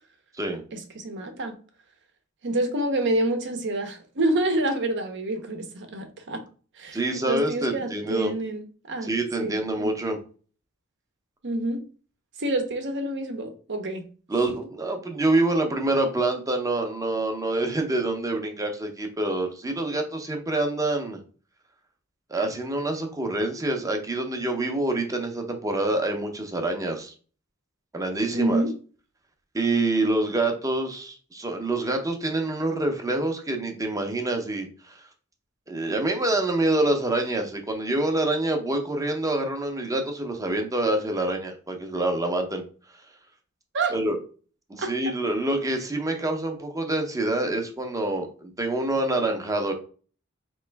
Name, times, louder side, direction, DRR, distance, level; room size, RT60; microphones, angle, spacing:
voice 1, 0.7-1.6 2.4-6.4 6.7-9.1 9.4-9.9 11.4-11.9 12.4-14.1 28.3-28.7 43.7-43.9 44.8-45.1, right 1 dB, 55° right, 0.8 m, -28 dB
voice 2, 6.9-8.3 9.0-10.2 14.3-21.2 22.3-27.1 27.9-28.6 29.5-35.0 35.7-42.6 43.9-44.2 44.7-49.7, right 2 dB, 15° right, 0.7 m, -26 dB
4.2 x 3.1 x 3.3 m
head